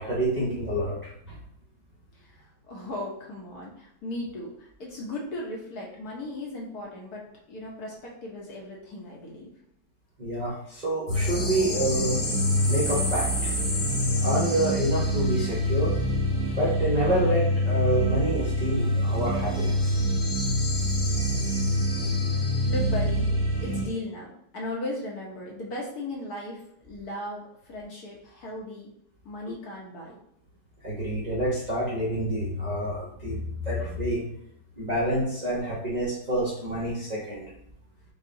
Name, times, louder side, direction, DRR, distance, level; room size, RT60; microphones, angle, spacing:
voice 1, 0.0-1.4 10.2-12.2 12.7-13.6 14.2-15.9 16.6-20.0 29.5-29.6 30.8-34.3 34.8-37.5, right 1 dB, 55° right, -8 dB, 0.4 m, -28 dB
voice 2, 2.1-9.5 16.5-16.6 22.7-23.3 23.6-28.9 29.2-30.2, left 1 dB, 60° left, -3 dB, 1.0 m, -37 dB
sound 1, 11.1-23.9, equal, 30° left, 1.0 m, -25 dB
5.4 x 2.2 x 2.6 m, 0.75 s
omnidirectional pair, 2.2 m